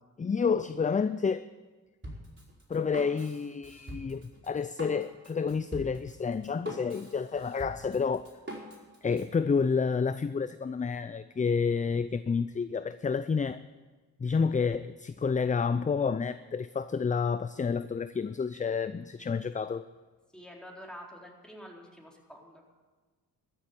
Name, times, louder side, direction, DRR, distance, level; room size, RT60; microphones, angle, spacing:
voice 1, 0.2-1.5 2.7-8.2 9.0-13.6 14.2-19.9, left 5 dB, 20° left, 0.4 m, -29 dB
Drum kit, 2.0-9.3, right 1 dB, 30° right, 4.8 m, -45 dB
voice 2, 20.3-22.6, equal, ahead, 4.0 m, -47 dB
14.0 x 7.5 x 9.7 m
supercardioid pair, 50°, 38 cm